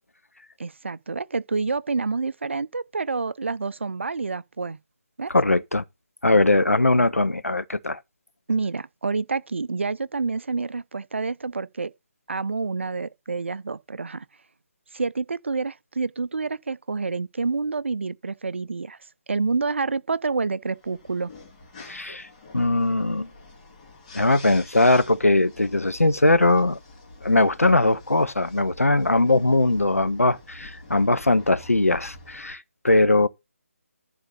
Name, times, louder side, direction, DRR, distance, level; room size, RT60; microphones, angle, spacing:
voice 1, 0.6-4.8 5.2-5.3 8.5-11.9 12.3-14.3 14.9-19.0 19.3-21.3, right 4 dB, 55° right, 0.5 m, -28 dB
voice 2, 5.3-5.8 6.2-8.0 21.9-22.3 22.5-23.3 24.1-26.8 27.2-33.3, left 2 dB, 75° left, 0.9 m, -20 dB
sound 1, 20.7-32.6, left 2 dB, 25° left, 2.6 m, -46 dB
11.0 x 3.9 x 6.7 m
figure-of-eight pair, 150°, 8 cm